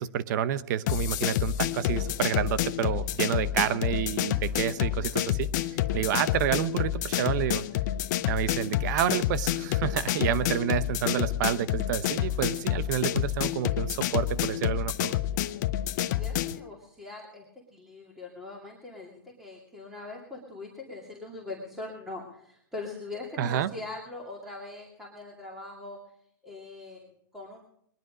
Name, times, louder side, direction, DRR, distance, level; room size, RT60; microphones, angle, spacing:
voice 1, 0.0-5.5 5.9-7.6 8.3-15.2 23.4-23.7, right 10 dB, 55° right, 15 dB, 0.8 m, -29 dB
sound 1, 0.9-16.6, left 13 dB, 55° left, 0.7 m, -29 dB
voice 2, 16.0-17.4 17.7-26.0 26.4-27.6, left 3 dB, 5° right, -2 dB, 2.5 m, -42 dB
21.0 x 11.0 x 5.0 m, 0.70 s
hypercardioid pair, 130°, 12 cm